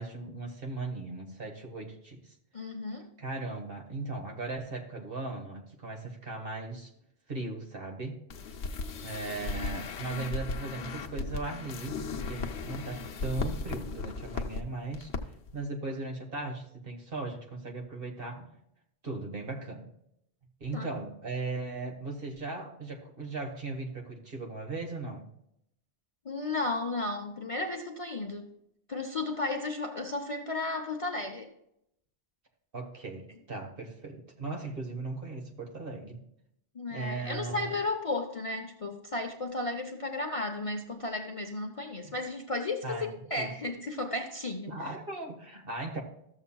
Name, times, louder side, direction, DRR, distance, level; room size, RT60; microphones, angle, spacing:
voice 1, 0.0-2.3 3.2-6.9 7.3-8.2 8.5-8.6 9.0-18.5 19.0-19.9 20.6-25.3 32.7-36.2 36.9-37.7 42.0-42.1 42.8-43.5 44.7-46.0, right 3 dB, 60° right, 2 dB, 1.6 m, -38 dB
voice 2, 2.5-3.1 10.1-10.2 20.7-20.9 26.2-28.5 28.9-31.5 36.7-44.7, left 2 dB, 35° left, 3 dB, 0.7 m, -34 dB
sound 1, 8.3-14.6 14.9-15.2 15.5-15.6, left 4 dB, 80° left, 1.0 m, -36 dB
13.5 x 7.2 x 2.3 m, 0.75 s
omnidirectional pair, 1.1 m